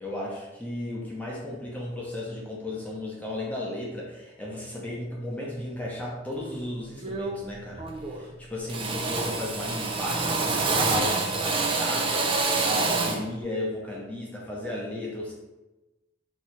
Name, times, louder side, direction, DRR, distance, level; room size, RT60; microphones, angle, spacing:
voice 1, 0.0-15.3, left 1 dB, 5° left, -4 dB, 0.7 m, -34 dB
Drill, 6.4-6.6 7.0-7.5 7.8-8.3 8.7-13.3, right 3 dB, 25° right, 0.4 m, -27 dB
3.0 x 2.8 x 4.5 m, 1.1 s
head